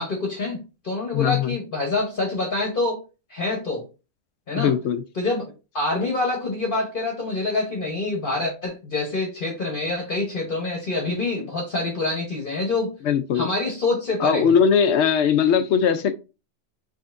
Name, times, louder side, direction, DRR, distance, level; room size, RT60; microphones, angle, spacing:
voice 1, 0.0-3.0 3.3-3.8 4.5-4.7 5.1-13.0 13.3-14.5, left 2 dB, 45° left, 1.1 m, -26 dB
voice 2, 1.1-1.5 4.5-5.0 13.1-13.5 14.2-16.1, left 7 dB, 70° left, 0.8 m, -20 dB
5.2 x 3.5 x 2.5 m
omnidirectional pair, 1.3 m